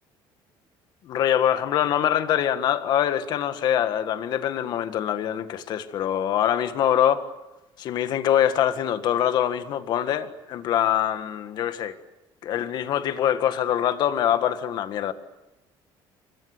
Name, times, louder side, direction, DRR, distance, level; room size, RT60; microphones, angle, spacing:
voice 1, 1.1-7.3 7.8-12.0 12.4-15.1, left 10 dB, 50° left, 1.8 m, -24 dB
28.5 x 24.5 x 8.0 m
cardioid pair, 165°, 9 cm